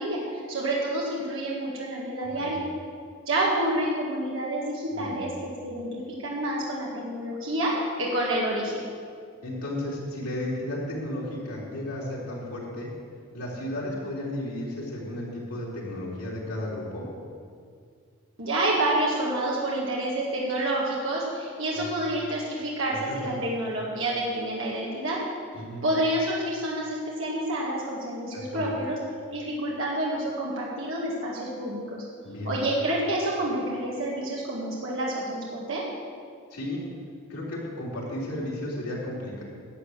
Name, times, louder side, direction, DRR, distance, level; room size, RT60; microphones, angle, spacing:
voice 1, 0.0-2.6 3.3-8.8 18.4-25.2 25.8-29.0 29.3-32.1 32.4-35.8, right 1 dB, 60° right, -4 dB, 1.9 m, -28 dB
voice 2, 2.2-2.5 4.9-5.2 9.4-12.9 13.3-17.1 21.7-21.9 22.9-23.4 25.5-25.9 28.3-28.8 32.2-32.6 36.5-36.8 37.3-39.4, left 1 dB, 90° left, -5 dB, 3.6 m, -34 dB
11.5 x 8.1 x 7.4 m, 2.2 s
head